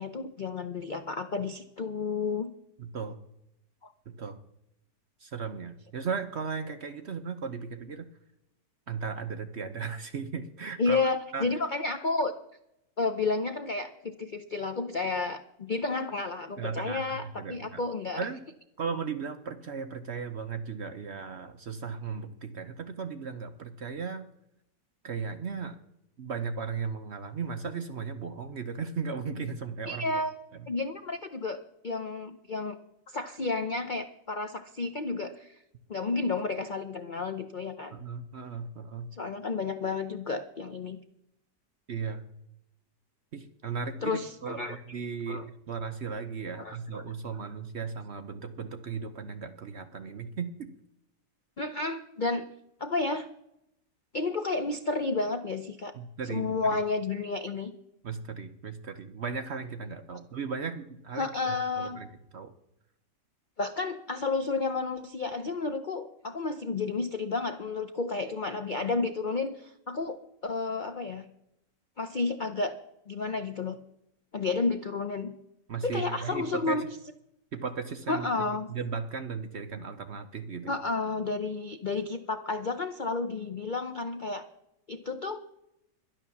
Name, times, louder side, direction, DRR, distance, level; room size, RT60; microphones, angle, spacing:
voice 1, 0.0-2.5 3.8-3.9 10.8-12.3 13.0-18.3 29.9-30.3 30.7-32.8 33.1-35.5 35.9-37.9 39.2-41.0 44.0-44.8 45.3-45.4 46.6-47.0 51.6-52.5 52.8-53.3 54.1-55.9 56.3-57.7 61.2-62.0 63.6-71.3 72.0-72.7 73.1-73.8 74.3-75.3 75.8-76.8 78.1-78.7 80.7-84.5 84.9-85.4, left 3 dB, 60° left, 8 dB, 0.5 m, -31 dB
voice 2, 2.8-3.2 4.1-4.4 5.2-8.1 8.9-11.0 11.3-11.5 16.6-17.8 18.2-18.4 18.8-24.2 25.0-25.8 26.2-30.1 30.5-30.7 37.9-39.1 41.9-42.3 43.3-50.7 55.9-56.8 58.0-62.1 62.3-62.5 75.7-76.9 77.5-78.3 78.7-80.8, right 5 dB, 55° right, 7 dB, 0.8 m, -36 dB
12.0 x 11.0 x 7.0 m, 0.81 s
omnidirectional pair, 1.8 m